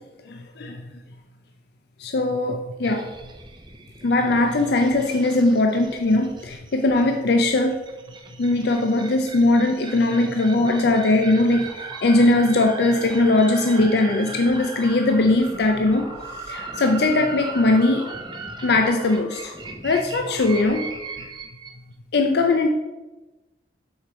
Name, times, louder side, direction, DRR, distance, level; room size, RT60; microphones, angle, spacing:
voice 1, 0.3-0.9 2.0-3.1 4.0-7.8 8.4-16.1 16.3-18.1 18.6-19.5 19.8-20.8 22.1-22.7, left 2 dB, 65° left, 4 dB, 0.5 m, -20 dB
sound 1, 2.8-21.8, right 4 dB, 25° right, 0.7 m, -38 dB
sound 2, 10.7-20.7, equal, 15° left, 0.7 m, -42 dB
6.3 x 4.5 x 4.9 m, 1.1 s
head